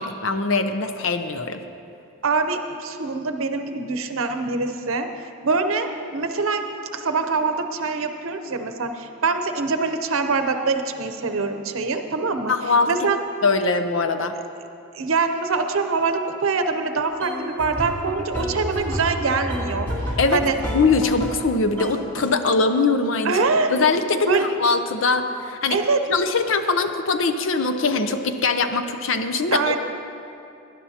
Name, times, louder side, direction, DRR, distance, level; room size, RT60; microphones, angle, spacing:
voice 1, 0.0-1.6 12.5-12.9 13.4-14.3 20.2-20.4 20.7-23.4 23.7-25.8 26.1-29.8, left 4 dB, 65° left, 7 dB, 0.6 m, -22 dB
voice 2, 2.2-5.1 5.4-6.7 6.9-12.5 12.9-13.2 14.9-19.9 20.3-20.5 23.2-23.7 24.3-24.5 25.7-26.2 29.5-29.8, right 4 dB, 75° right, 6 dB, 0.7 m, -24 dB
sound 1, 17.2-21.5 21.8-22.3, equal, 10° left, 2.0 m, -30 dB
19.0 x 10.5 x 2.8 m, 2.6 s
head